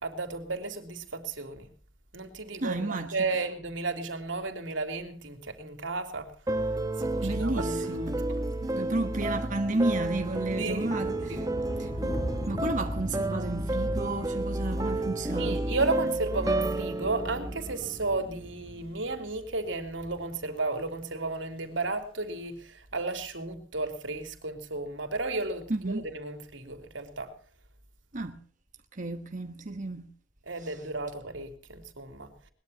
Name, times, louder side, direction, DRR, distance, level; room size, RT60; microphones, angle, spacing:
voice 1, 0.0-1.7 2.1-6.3 7.0-8.0 8.3-8.4 10.6-11.0 11.3-11.6 15.4-27.3 30.4-32.5, right 3 dB, 80° right, 3.3 m, -33 dB
voice 2, 2.6-3.3 7.2-8.2 8.7-11.5 11.8-11.9 12.5-15.6 25.7-26.1 28.1-28.4 28.9-30.1, right 2 dB, 40° right, 1.2 m, -32 dB
sound 1, 6.5-18.6, right 1 dB, 20° right, 1.2 m, -31 dB
sound 2, 9.2-21.0, equal, 30° left, 1.9 m, -41 dB
21.5 x 21.0 x 2.9 m
head